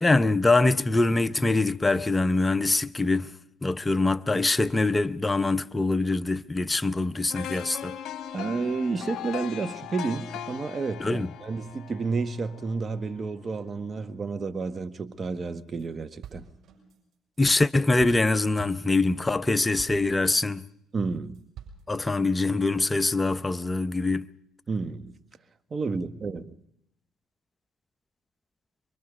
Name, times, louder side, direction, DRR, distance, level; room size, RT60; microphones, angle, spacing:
voice 1, 0.0-3.3 3.6-7.9 11.0-11.3 17.4-20.6 21.9-24.3, left 2 dB, 20° left, 0.8 m, -24 dB
sound 1, 7.3-13.3 13.7-13.8, left 10 dB, 60° left, 1.4 m, -39 dB
voice 2, 8.3-16.5 20.9-21.4 24.7-25.2 25.7-26.5, right 4 dB, 40° right, 1.5 m, -31 dB
sound 2, 15.4-15.9 16.2-20.7 21.1-22.1, right 7 dB, 60° right, 6.8 m, -48 dB
25.0 x 23.5 x 5.3 m
hypercardioid pair, 60°, 0 cm